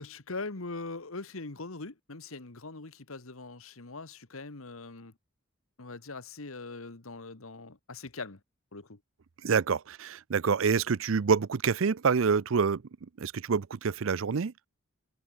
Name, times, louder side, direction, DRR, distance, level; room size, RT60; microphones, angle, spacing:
voice 1, 0.0-5.1 5.8-8.4 8.7-9.0, left 3 dB, 75° left, 1.6 m, -41 dB
voice 2, 9.4-12.8 13.2-14.5, right 5 dB, 65° right, 0.5 m, -27 dB
head